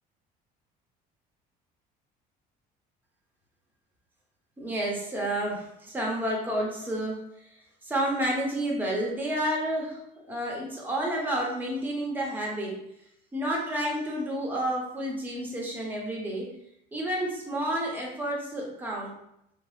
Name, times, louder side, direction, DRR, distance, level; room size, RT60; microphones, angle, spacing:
voice 1, 4.6-7.2 7.8-12.8 13.3-16.5 16.9-19.1, right 1 dB, 10° right, -3 dB, 0.8 m, -30 dB
2.9 x 2.0 x 3.1 m, 0.79 s
cardioid pair, 115°, 17 cm